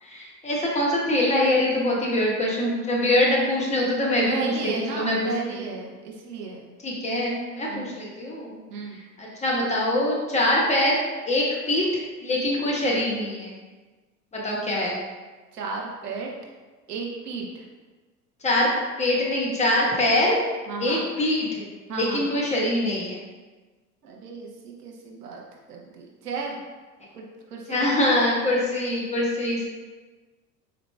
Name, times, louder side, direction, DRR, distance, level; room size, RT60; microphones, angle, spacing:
voice 1, 0.0-5.3 6.8-8.6 9.2-11.0 11.3-13.6 14.3-15.0 18.4-18.7 19.0-20.4 20.8-23.2 27.7-29.6, left 1 dB, 15° left, -4 dB, 0.8 m, -24 dB
voice 2, 4.3-6.7 7.7-7.9 8.7-9.0 15.5-16.3 16.9-17.7 20.7-21.0 21.9-22.2 24.0-26.6 27.1-27.9, right 4 dB, 70° right, 0 dB, 0.9 m, -34 dB
4.9 x 3.9 x 2.2 m, 1.3 s
figure-of-eight pair, 75°, 49 cm